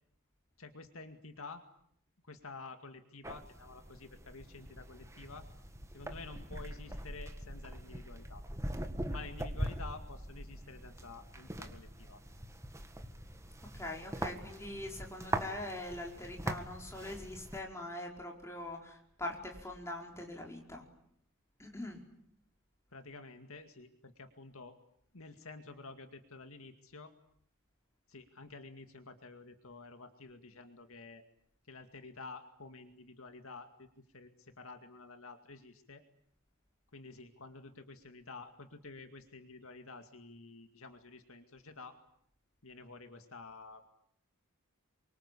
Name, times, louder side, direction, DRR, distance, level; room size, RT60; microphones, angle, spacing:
voice 1, 0.6-1.6 2.2-5.5 5.9-8.5 9.1-12.2 22.9-24.8 25.1-27.1 28.1-31.2 31.7-33.9 34.1-36.0 36.9-42.0 42.6-43.9, left 3 dB, 65° left, 7 dB, 2.2 m, -50 dB
sound 1, 3.2-17.6, right 1 dB, 15° right, 1.8 m, -42 dB
voice 2, 13.7-20.8 21.6-22.0, left 1 dB, 10° left, 0 dB, 4.9 m, -43 dB
28.0 x 24.5 x 8.6 m, 0.67 s
head